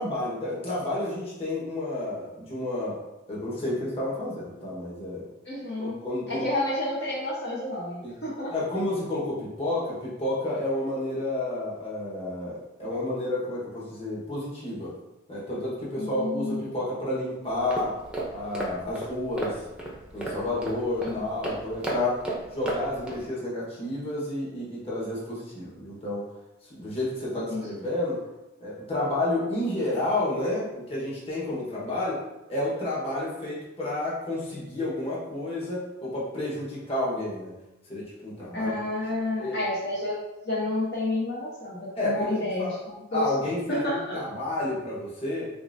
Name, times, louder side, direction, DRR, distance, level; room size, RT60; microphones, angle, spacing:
voice 1, 0.0-3.0 3.3-5.2 5.8-6.5 8.0-8.1 8.5-14.9 15.3-17.9 18.3-19.6 20.1-22.2 22.5-26.3 26.6-28.2 28.6-32.2 32.5-37.6 37.9-38.8 39.4-39.6 41.9-42.8 43.1-45.5, left 1 dB, 30° left, -7 dB, 1.3 m, -30 dB
voice 2, 5.4-6.0 6.3-8.5 16.0-16.8 21.0-21.3 27.5-27.8 38.5-40.2 40.4-44.2, left 2 dB, 50° left, -7 dB, 1.0 m, -30 dB
sound 1, 17.5-23.3, right 1 dB, 5° right, 0.7 m, -35 dB
6.7 x 2.5 x 2.7 m, 0.97 s
head